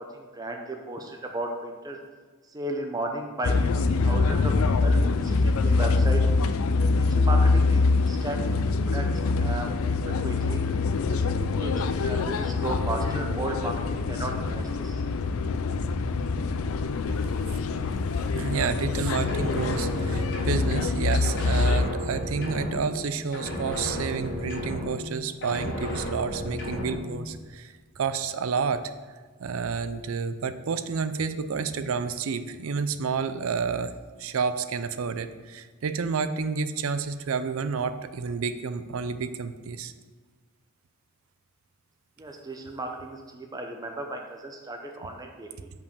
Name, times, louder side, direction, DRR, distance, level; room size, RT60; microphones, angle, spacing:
voice 1, 0.0-2.0 2.5-6.2 7.0-8.4 8.9-9.1 9.4-10.6 11.1-11.7 12.0-15.0 42.2-45.7, right 2 dB, 20° right, 2 dB, 0.6 m, -35 dB
sound 1, 3.4-21.8, left 3 dB, 75° left, 0.4 m, -25 dB
voice 2, 18.3-28.9 29.4-33.9 34.2-39.9, right 5 dB, 70° right, 12 dB, 0.5 m, -30 dB
sound 2, 19.1-21.0 21.2-23.1 23.3-25.2 25.4-27.1, left 1 dB, 55° left, 1.9 m, -33 dB
5.3 x 5.2 x 6.5 m, 1.4 s
head